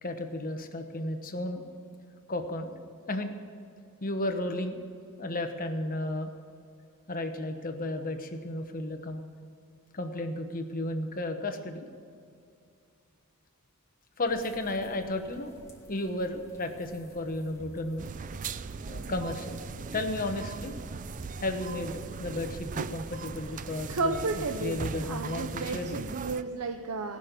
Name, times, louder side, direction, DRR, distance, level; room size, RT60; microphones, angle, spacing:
voice 1, 0.0-1.6 2.3-2.7 3.1-3.3 4.0-4.8 5.2-6.3 7.1-9.2 9.9-11.9 14.2-15.5 15.9-18.1 18.9-19.6 19.9-20.7 21.4-26.0, left 1 dB, 40° left, 6 dB, 1.2 m, -33 dB
sound 1, 14.3-22.6, left 1 dB, 15° left, 2.5 m, -53 dB
sound 2, 18.0-26.4, right 5 dB, 35° right, 0.4 m, -39 dB
voice 2, 23.4-27.2, right 3 dB, 85° right, 6 dB, 0.7 m, -33 dB
19.5 x 6.5 x 8.3 m, 2.4 s
head